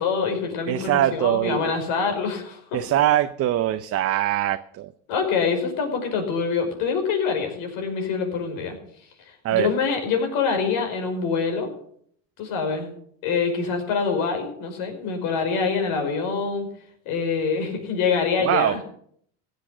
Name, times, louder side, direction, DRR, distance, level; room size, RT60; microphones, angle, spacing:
voice 1, 0.0-2.8 5.1-8.8 9.5-11.7 12.4-12.9 13.2-16.7 17.1-18.8, left 5 dB, 65° left, 4 dB, 5.4 m, -25 dB
voice 2, 0.7-1.6 2.7-4.9 9.4-9.7 18.4-18.8, right 13 dB, 40° right, 9 dB, 0.8 m, -22 dB
16.0 x 8.3 x 7.6 m, 0.63 s
supercardioid pair, 105°, 37 cm